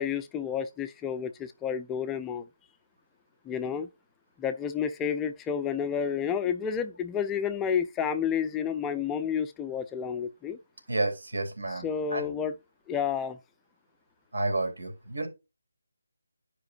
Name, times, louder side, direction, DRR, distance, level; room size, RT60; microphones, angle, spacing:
voice 1, 0.0-2.4 3.5-3.9 4.4-10.6 11.8-12.6 12.9-13.4, left 7 dB, 10° left, 0.3 m, -30 dB
voice 2, 10.9-12.3 14.3-15.3, right 2 dB, 85° right, 3.4 m, -31 dB
10.5 x 5.0 x 2.5 m
figure-of-eight pair, 170°, 0 cm